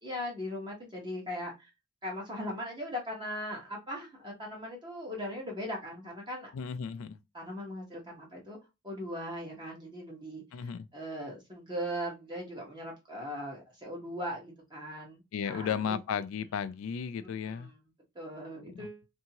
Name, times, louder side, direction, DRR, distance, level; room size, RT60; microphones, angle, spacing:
voice 1, 0.0-1.7 2.0-6.5 7.3-8.6 8.8-15.9 17.2-17.8 18.1-19.0, equal, 20° right, 0.9 m, -39 dB
voice 2, 6.5-7.2 10.5-10.9 15.3-17.7 18.7-18.9, left 7 dB, 90° left, 0.3 m, -34 dB
2.7 x 2.6 x 2.7 m
head